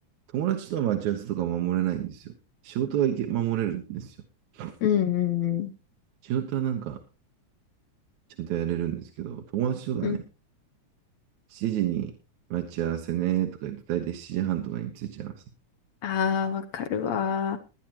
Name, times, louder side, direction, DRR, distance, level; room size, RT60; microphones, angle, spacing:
voice 1, 0.3-2.3 2.6-4.2 4.5-4.7 6.2-7.0 8.4-10.2 11.5-12.1 12.5-15.4, right 11 dB, 75° right, 4 dB, 2.5 m, -29 dB
voice 2, 4.8-5.7 10.0-10.2 16.0-17.6, left 9 dB, 70° left, 6 dB, 1.9 m, -26 dB
21.5 x 10.0 x 3.0 m, 0.32 s
omnidirectional pair, 3.5 m